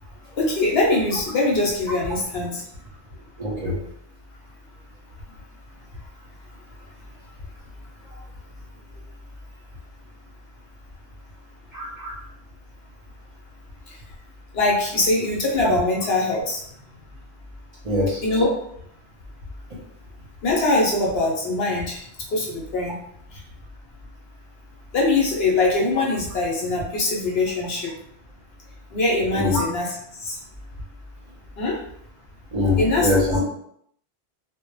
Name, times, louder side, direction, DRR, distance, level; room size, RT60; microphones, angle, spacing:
voice 1, 0.4-2.6 14.5-16.6 18.2-18.5 20.4-23.0 24.9-27.9 28.9-29.9 30.2-30.4 31.6-31.8 32.8-33.1, left 2 dB, 70° left, -2 dB, 0.9 m, -22 dB
voice 2, 3.4-3.8 11.7-12.2 17.8-18.2 29.3-29.6 32.5-33.4, left 2 dB, 45° right, -5 dB, 0.6 m, -23 dB
2.1 x 2.0 x 3.0 m, 0.71 s
omnidirectional pair, 1.1 m